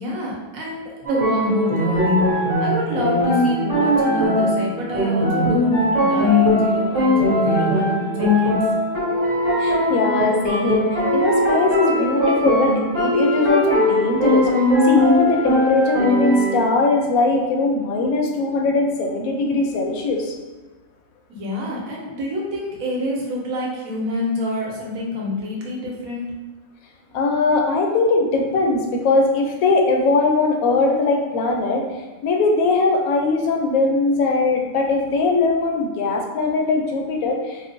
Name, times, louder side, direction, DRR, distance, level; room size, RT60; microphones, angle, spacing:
voice 1, 0.0-2.2 2.6-8.6 21.3-26.3, left 1 dB, 90° right, -2 dB, 1.2 m, -27 dB
sound 1, 1.1-16.7, left 1 dB, 45° right, 1.2 m, -19 dB
voice 2, 9.6-14.5 14.8-20.4 27.1-31.9 32.2-37.7, left 3 dB, 85° left, 2 dB, 1.0 m, -20 dB
4.3 x 2.0 x 2.6 m, 1.2 s
omnidirectional pair, 1.4 m